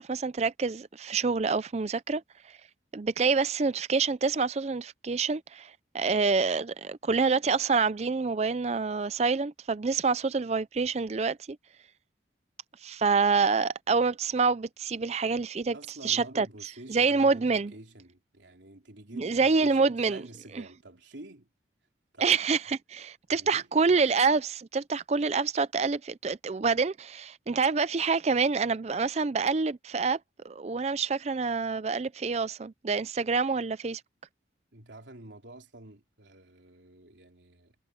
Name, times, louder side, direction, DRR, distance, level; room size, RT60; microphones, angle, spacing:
voice 1, 0.0-2.2 2.9-11.6 12.8-15.8 16.0-16.5 16.9-17.7 19.1-20.2 22.2-30.2 30.4-34.0, right 4 dB, 35° right, 0.4 m, -27 dB
voice 2, 15.7-21.5 22.1-22.3 23.3-23.7 34.7-37.7, right 2 dB, 75° right, 3.4 m, -48 dB
head